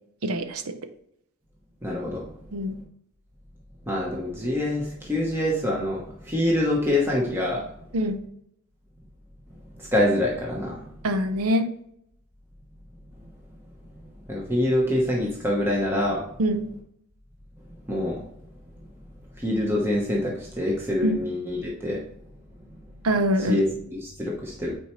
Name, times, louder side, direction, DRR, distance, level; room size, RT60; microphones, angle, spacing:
voice 1, 0.2-0.8 2.5-2.8 7.9-8.2 11.0-11.7 16.4-16.7 21.0-21.2 23.0-23.6, equal, 90° right, 8 dB, 0.8 m, -24 dB
voice 2, 1.8-2.3 3.9-7.6 9.8-10.8 14.3-16.3 17.9-18.2 19.4-22.0 23.5-24.7, left 1 dB, 10° right, -3 dB, 1.0 m, -25 dB
9.2 x 4.4 x 3.1 m, 0.74 s
head